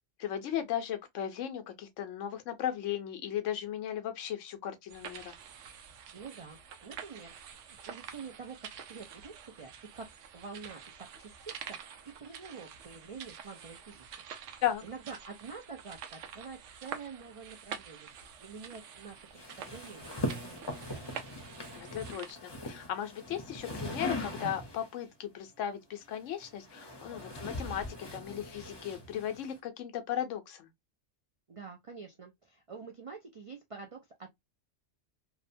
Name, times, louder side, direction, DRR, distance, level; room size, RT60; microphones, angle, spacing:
voice 1, 0.2-5.4 14.6-14.8 21.8-30.7, left 10 dB, 90° left, 1.0 m, -36 dB
sound 1, 4.9-22.3, right 8 dB, 90° right, 0.9 m, -47 dB
voice 2, 6.1-10.1 10.3-11.8 12.1-14.2 14.5-18.1 18.4-21.1 31.5-34.3, right 5 dB, 65° right, 0.3 m, -47 dB
sound 2, 19.3-25.0 26.0-29.6, left 1 dB, 30° left, 0.6 m, -40 dB
2.8 x 2.1 x 2.5 m
omnidirectional pair, 1.2 m